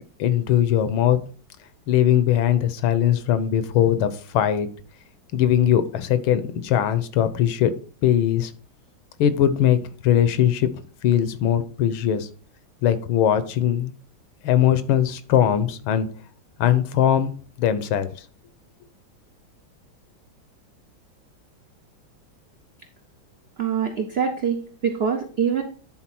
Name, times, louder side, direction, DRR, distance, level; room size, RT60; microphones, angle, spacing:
voice 1, 0.2-1.2 1.9-4.7 5.3-7.7 8.0-8.5 9.2-10.7 11.0-12.3 12.8-13.9 14.4-16.1 16.6-17.3 17.6-18.1, left 10 dB, 85° left, 12 dB, 1.6 m, -20 dB
voice 2, 23.6-25.6, right 7 dB, 80° right, 4 dB, 0.5 m, -24 dB
10.5 x 3.9 x 4.3 m, 0.42 s
omnidirectional pair, 2.2 m